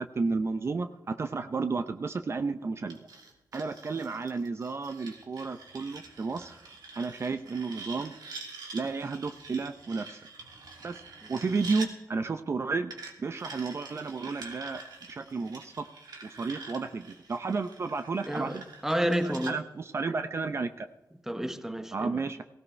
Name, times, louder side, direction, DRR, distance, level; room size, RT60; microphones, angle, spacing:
voice 1, 0.0-3.0 3.5-6.6 7.0-8.1 8.7-10.2 10.8-11.0 11.3-12.9 13.2-14.8 15.1-15.9 16.2-18.6 19.2-20.9 21.9-22.4, right 4 dB, 40° right, 0.6 m, -32 dB
sound 1, 2.9-11.9 12.9-19.5, right 3 dB, 75° right, 2.5 m, -46 dB
voice 2, 18.2-19.6 21.3-22.2, equal, 5° right, 1.0 m, -30 dB
18.0 x 16.5 x 3.3 m
wide cardioid pair, 115°, 7 cm